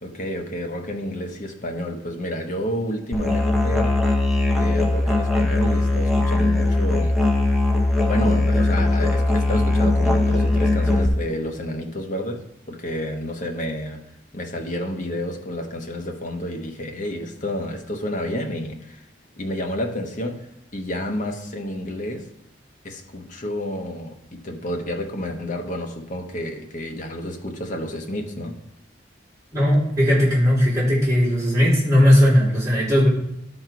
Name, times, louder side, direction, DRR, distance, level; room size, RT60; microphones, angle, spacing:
voice 1, 0.0-3.9 4.5-7.2 8.1-14.0 14.3-19.0 19.4-20.5 20.7-22.3 22.8-28.6, left 1 dB, 45° left, 3 dB, 1.0 m, -30 dB
Musical instrument, 3.1-11.1, left 2 dB, ahead, 0.7 m, -20 dB
voice 2, 29.5-33.1, equal, 15° right, -7 dB, 3.3 m, -17 dB
12.0 x 4.4 x 4.5 m, 0.79 s
head